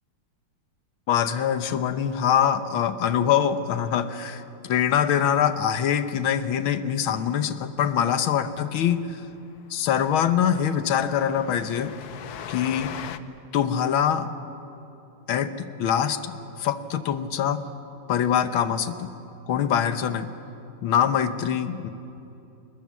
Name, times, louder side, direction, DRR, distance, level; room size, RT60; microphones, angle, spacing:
voice 1, 1.1-9.2 9.7-12.0 12.5-13.0 13.5-14.3 15.3-15.5 15.8-17.6 18.1-19.1 19.5-20.3 20.8-21.9, left 9 dB, 80° left, 11 dB, 1.8 m, -24 dB
Train, 8.6-8.7 9.0-9.1 9.4-9.5 9.8-13.2, left 9 dB, 60° left, 1.1 m, -40 dB
28.0 x 20.5 x 7.5 m, 2.8 s
omnidirectional pair, 2.2 m